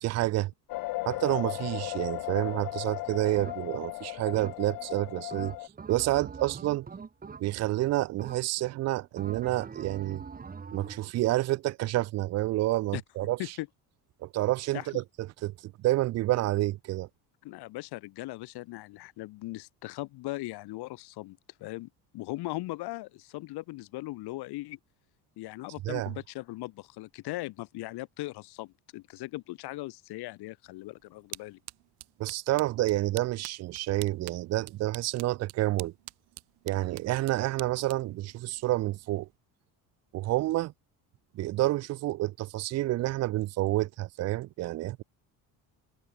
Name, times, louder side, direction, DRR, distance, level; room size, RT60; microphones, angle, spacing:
voice 1, 0.0-0.5 1.1-5.5 5.9-6.9 7.4-10.2 10.7-13.4 14.2-17.1 25.8-26.1 32.2-35.9 36.6-39.3 40.1-40.7 41.3-45.0, right 16 dB, 45° right, 0.4 m, -29 dB
sound 1, 0.7-5.7, left 20 dB, 60° left, 0.5 m, -36 dB
sound 2, 3.4-3.9 4.3-4.9 5.3-7.8 8.2-8.7 9.2-11.1, right 5 dB, 20° right, 3.5 m, -44 dB
voice 2, 17.4-24.8 25.4-31.6, left 19 dB, 75° left, 2.6 m, -39 dB
sound 3, 30.6-39.4, right 19 dB, 80° right, 2.8 m, -49 dB
cardioid pair, 150°, 39 cm